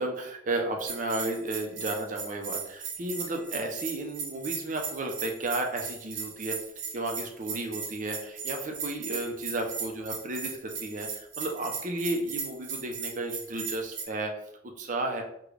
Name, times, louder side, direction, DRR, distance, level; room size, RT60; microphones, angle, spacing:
voice 1, 0.0-6.6 6.9-14.3 14.8-15.2, right 2 dB, 45° right, 3 dB, 0.5 m, -33 dB
Bell, 0.9-14.0, right 6 dB, 90° right, 0.7 m, -37 dB
3.7 x 2.2 x 3.2 m, 0.75 s
head